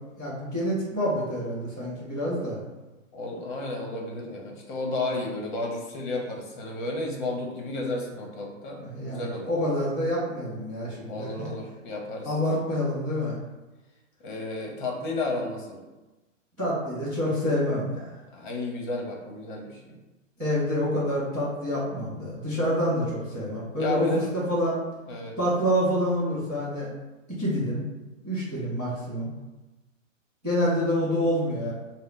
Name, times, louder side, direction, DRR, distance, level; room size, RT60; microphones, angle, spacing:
voice 1, 0.2-2.6 8.8-11.5 12.2-13.3 16.6-18.1 20.4-24.8 25.4-26.9 27.4-27.8 28.2-29.3 30.4-31.7, equal, 5° right, -18 dB, 0.4 m, -27 dB
voice 2, 3.1-9.5 11.1-12.4 14.2-15.8 18.3-19.8 23.8-24.3 25.1-25.3, left 2 dB, 40° left, 0 dB, 0.9 m, -32 dB
4.2 x 2.1 x 3.8 m, 1.1 s
hypercardioid pair, 155°, 39 cm